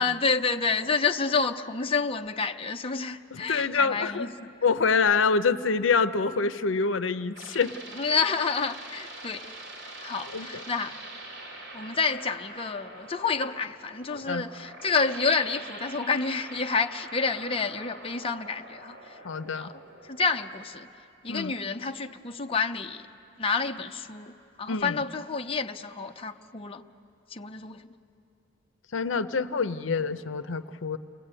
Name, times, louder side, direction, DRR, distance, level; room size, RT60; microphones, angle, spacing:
voice 1, 0.0-4.5 7.9-9.5 10.0-10.9 11.7-19.1 19.5-19.7 20.0-20.9 21.2-23.1 23.4-24.3 24.6-26.8 27.3-27.8, left 4 dB, 30° left, 4 dB, 0.7 m, -29 dB
voice 2, 3.3-4.3 4.6-7.8 10.2-10.6 14.1-14.5 19.2-19.7 21.3-21.5 24.7-24.9 28.9-31.0, left 5 dB, 80° left, 12 dB, 0.7 m, -26 dB
sound 1, 6.9-20.5, right 2 dB, 65° right, 3.6 m, -44 dB
30.0 x 21.5 x 8.9 m, 2.7 s
head